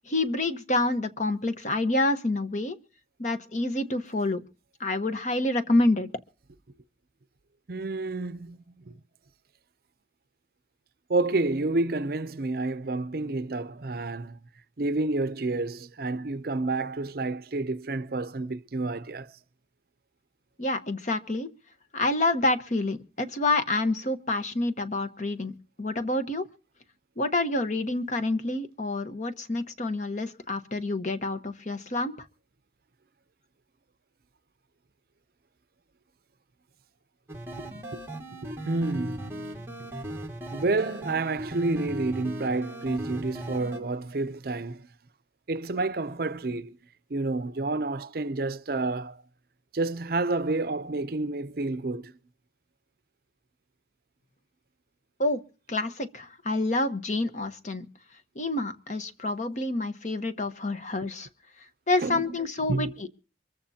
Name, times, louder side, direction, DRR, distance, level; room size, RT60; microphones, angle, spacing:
voice 1, 0.1-2.8 3.2-4.4 4.8-6.1 20.6-21.5 21.9-25.5 25.8-26.5 27.2-32.1 55.2-55.4 55.7-57.9 58.3-61.3 61.9-63.1, left 2 dB, 40° left, 1.2 m, -28 dB
voice 2, 7.7-8.6 8.9-9.0 11.1-14.4 14.8-19.3 37.6-38.0 38.4-39.9 40.5-44.9 45.5-46.8 47.1-49.2 49.7-52.1 62.0-62.2 62.7-62.9, right 2 dB, 55° right, 0.6 m, -29 dB
sound 1, 37.3-43.8, right 1 dB, 15° right, 2.0 m, -38 dB
24.0 x 14.5 x 2.8 m
head